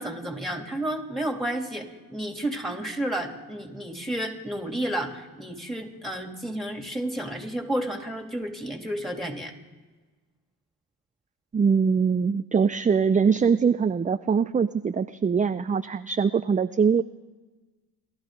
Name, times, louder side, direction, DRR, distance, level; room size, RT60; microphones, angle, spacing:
voice 1, 0.0-9.5, right 1 dB, ahead, 3 dB, 3.0 m, -31 dB
voice 2, 11.5-17.0, right 6 dB, 20° right, 11 dB, 0.4 m, -22 dB
30.0 x 12.0 x 3.9 m, 1.3 s
supercardioid pair, 60°, 40 cm